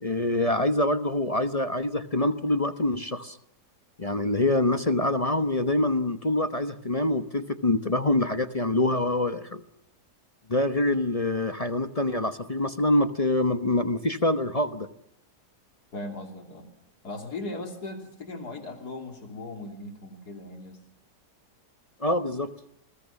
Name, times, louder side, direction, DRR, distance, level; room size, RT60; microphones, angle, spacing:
voice 1, 0.0-3.4 4.0-9.6 10.5-14.9 22.0-22.5, left 1 dB, 30° left, 11 dB, 0.8 m, -25 dB
voice 2, 15.9-16.7 17.0-20.8, left 2 dB, 65° left, 5 dB, 3.4 m, -38 dB
28.5 x 21.0 x 7.2 m, 0.74 s
omnidirectional pair, 1.8 m